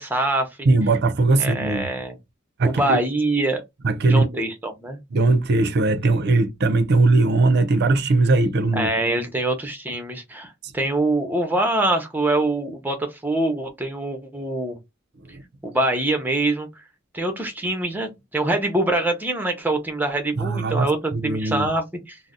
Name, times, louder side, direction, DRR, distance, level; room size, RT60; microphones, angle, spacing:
voice 1, 0.0-0.7 1.4-2.2 2.6-3.6 4.1-5.0 8.7-14.8 15.6-16.7 17.1-22.2, right 2 dB, 10° right, 0.7 m, -24 dB
voice 2, 0.7-2.0 2.6-3.0 3.8-4.4 5.1-8.9 15.3-15.4 20.4-21.7, right 3 dB, 55° right, 0.5 m, -19 dB
2.6 x 2.0 x 3.5 m
head